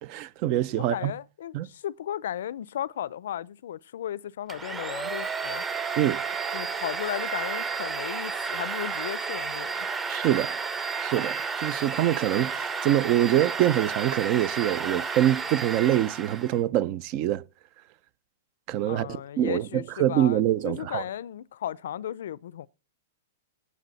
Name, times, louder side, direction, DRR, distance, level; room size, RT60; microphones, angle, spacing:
voice 1, 0.0-1.1 1.5-1.7 6.0-6.2 10.1-10.6 11.0-17.4 18.7-19.1 19.4-21.0, right 12 dB, 45° right, 0.7 m, -25 dB
voice 2, 0.8-5.6 6.5-9.9 18.9-22.7, left 11 dB, 70° left, 0.5 m, -35 dB
Domestic sounds home sounds, 4.5-16.6, right 5 dB, 15° right, 1.0 m, -32 dB
17.0 x 8.2 x 4.1 m
hypercardioid pair, 125°, 0 cm